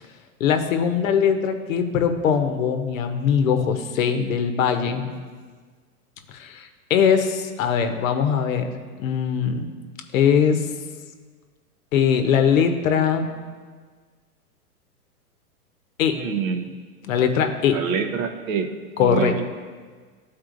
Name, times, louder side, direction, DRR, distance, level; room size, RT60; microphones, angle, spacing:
voice 1, 0.4-5.1 6.3-8.7 9.0-9.6 10.1-10.6 11.9-13.3 16.0-16.2 17.0-17.8 19.0-19.3, left 7 dB, 60° left, 7 dB, 0.8 m, -21 dB
voice 2, 16.1-16.7 17.7-19.4, right 6 dB, 60° right, 7 dB, 0.8 m, -27 dB
12.0 x 4.3 x 2.5 m, 1.5 s
hypercardioid pair, 125°, 46 cm